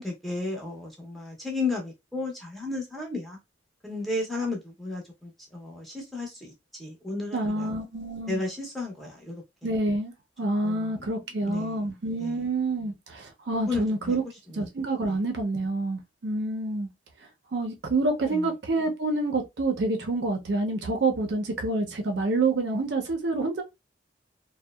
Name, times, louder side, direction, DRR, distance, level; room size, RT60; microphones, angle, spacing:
voice 1, 0.0-3.4 3.8-6.5 6.8-7.8 8.3-9.4 10.6-11.1 11.4-11.7 12.2-12.3 13.6-14.2 18.2-18.5, left 3 dB, ahead, 0.6 m, -33 dB
voice 2, 7.3-8.4 9.6-10.1 10.4-14.2 14.5-16.9 17.5-23.6, right 2 dB, 65° right, 0.5 m, -27 dB
2.7 x 2.1 x 2.2 m
head